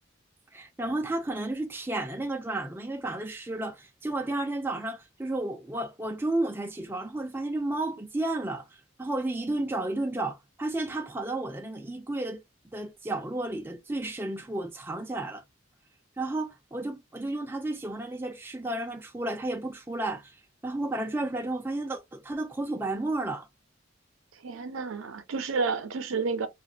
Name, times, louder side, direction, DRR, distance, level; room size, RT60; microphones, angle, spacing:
voice 1, 0.5-12.4 12.7-15.4 16.2-23.5, right 2 dB, 10° right, 0.4 m, -32 dB
voice 2, 24.3-26.5, right 4 dB, 75° right, 0.5 m, -30 dB
2.5 x 2.4 x 2.8 m
head